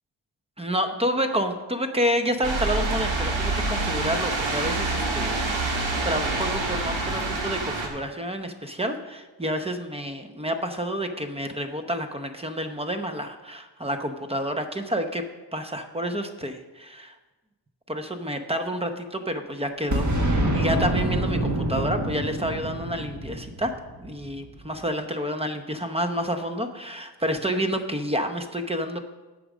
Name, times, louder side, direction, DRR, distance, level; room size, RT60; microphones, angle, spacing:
voice 1, 0.6-15.2 15.5-17.1 17.9-23.7 24.0-29.0, equal, 15° right, 7 dB, 0.8 m, -29 dB
Rain falling on road with moderate traffic, 2.4-7.9, right 2 dB, 90° right, 1.8 m, -26 dB
Boom, 19.9-24.6, right 1 dB, 40° right, 1.5 m, -26 dB
8.6 x 6.6 x 6.1 m, 1.2 s
wide cardioid pair, 120°, 46 cm